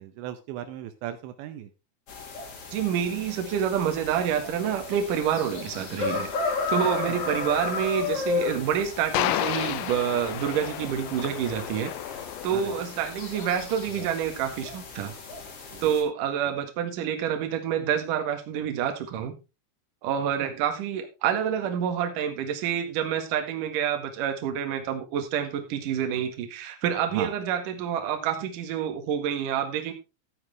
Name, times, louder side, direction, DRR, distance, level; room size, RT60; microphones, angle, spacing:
voice 1, 0.0-1.7 7.1-7.2 12.5-12.8 13.9-14.1 15.7-15.9 16.4-16.5 20.4-20.5 27.1-27.3, right 11 dB, 80° right, 9 dB, 3.1 m, -37 dB
sound 1, 2.1-16.0, left 4 dB, 40° left, 2.5 m, -34 dB
voice 2, 2.7-15.1 15.8-19.4 20.0-29.9, right 9 dB, 55° right, 5 dB, 2.7 m, -28 dB
sound 2, 6.3-13.7, left 13 dB, 85° left, 2.2 m, -33 dB
13.5 x 9.5 x 3.4 m, 0.28 s
omnidirectional pair, 5.3 m